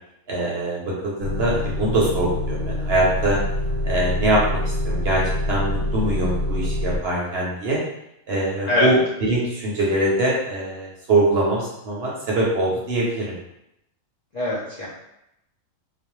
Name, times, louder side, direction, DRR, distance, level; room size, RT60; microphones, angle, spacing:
voice 1, 0.3-3.4 3.8-4.6 4.9-5.2 5.5-7.8 8.3-13.3, right 1 dB, 60° right, -4 dB, 0.7 m, -23 dB
Motor vehicle (road) / Engine starting / Idling, 1.2-7.0, left 1 dB, 80° right, 1.0 m, -25 dB
voice 2, 14.3-14.9, left 2 dB, 65° left, -7 dB, 0.4 m, -22 dB
2.4 x 2.0 x 2.9 m, 0.83 s
omnidirectional pair, 1.4 m